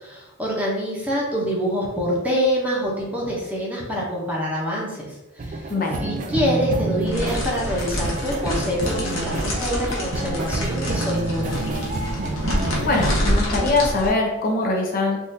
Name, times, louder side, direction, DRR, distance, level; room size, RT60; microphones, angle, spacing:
voice 1, 0.0-5.1 5.4-5.6 6.0-11.6, equal, 5° right, -4 dB, 0.7 m, -25 dB
sound 1, 5.4-13.2, right 2 dB, 40° right, 0.3 m, -28 dB
voice 2, 5.7-6.0 12.8-15.2, left 3 dB, 45° left, 0 dB, 0.5 m, -22 dB
sound 2, 7.1-14.1, equal, 75° left, 0.9 m, -27 dB
3.6 x 2.4 x 2.7 m, 1.0 s
head